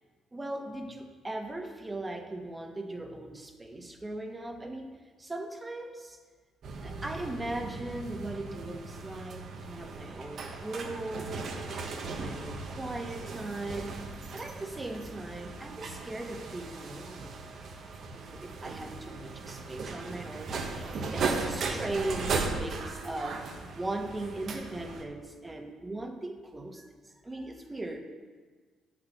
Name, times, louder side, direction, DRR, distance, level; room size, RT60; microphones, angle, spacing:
voice 1, 0.3-6.2 6.8-14.0 14.3-17.4 18.1-23.4 23.7-28.0, right 2 dB, 20° right, 4 dB, 1.4 m, -39 dB
sound 1, 6.6-25.0, right 4 dB, 60° right, 1.2 m, -37 dB
7.7 x 6.4 x 7.9 m, 1.4 s
supercardioid pair, 70°, 0 cm